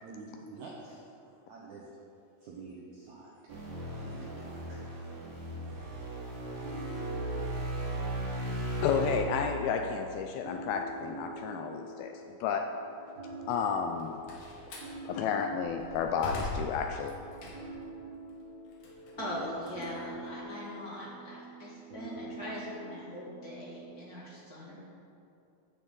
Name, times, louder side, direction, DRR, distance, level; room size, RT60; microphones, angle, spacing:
voice 1, 0.0-2.0 2.4-3.6 4.0-4.9 5.6-5.7, right 3 dB, 75° right, -3 dB, 1.8 m, -48 dB
sound 1, 3.5-9.2, right 1 dB, 50° right, 3.2 m, -36 dB
sound 2, 6.6-24.1, right 2 dB, 35° right, 2.4 m, -45 dB
voice 2, 8.8-12.6 13.5-14.2 15.1-17.2, left 7 dB, 80° left, 4 dB, 2.2 m, -32 dB
Slam, 13.8-15.0 15.5-17.9 18.3-20.7, left 2 dB, 55° left, 2.9 m, -42 dB
voice 3, 19.2-24.8, equal, 30° left, -7 dB, 2.1 m, -41 dB
13.5 x 9.1 x 3.9 m, 2.7 s
omnidirectional pair, 4.6 m